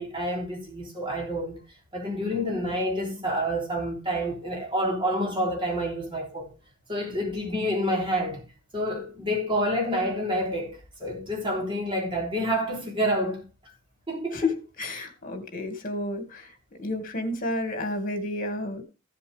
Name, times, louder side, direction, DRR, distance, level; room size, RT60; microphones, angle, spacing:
voice 1, 0.0-1.6 1.9-6.5 6.9-8.4 8.7-13.4 14.1-14.5, equal, 25° right, 3.7 m, -28 dB
voice 2, 14.3-18.8, left 2 dB, 45° left, 2.2 m, -31 dB
15.0 x 7.5 x 3.5 m
head